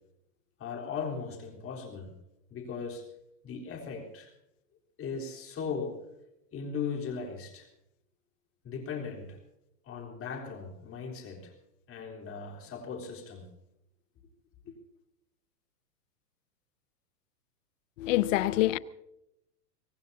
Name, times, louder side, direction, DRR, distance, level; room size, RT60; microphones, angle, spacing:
voice 1, 0.6-2.1 2.5-3.1 3.4-4.3 5.0-6.0 6.5-7.7 8.6-9.4 9.8-11.5 11.9-13.5 14.7-14.8, left 5 dB, 25° left, 3.9 m, -38 dB
voice 2, 18.0-18.8, left 16 dB, 50° left, 0.8 m, -25 dB
24.0 x 18.5 x 2.8 m
hypercardioid pair, 130°, 49 cm